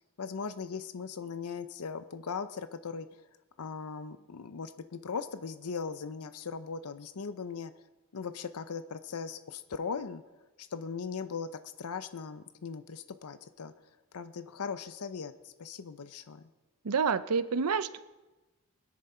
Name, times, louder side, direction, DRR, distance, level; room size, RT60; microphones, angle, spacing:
voice 1, 0.2-3.2 3.6-7.7 8.1-10.2 10.6-13.7 14.1-16.5, left 5 dB, 80° left, 11 dB, 0.6 m, -39 dB
voice 2, 16.8-18.0, right 5 dB, 85° right, 14 dB, 0.6 m, -28 dB
23.0 x 10.5 x 4.4 m, 1.1 s
head